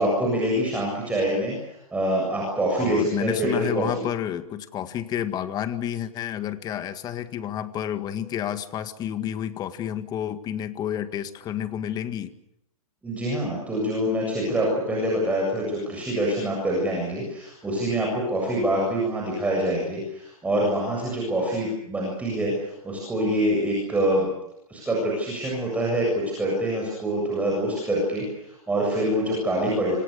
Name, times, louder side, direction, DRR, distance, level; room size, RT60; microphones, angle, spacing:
voice 1, 0.0-3.9 13.0-24.3 24.7-30.0, right 1 dB, 5° right, -2 dB, 7.5 m, -25 dB
voice 2, 2.8-12.3, left 10 dB, 20° left, 11 dB, 1.8 m, -30 dB
26.5 x 26.5 x 6.8 m, 0.79 s
hypercardioid pair, 145°, 19 cm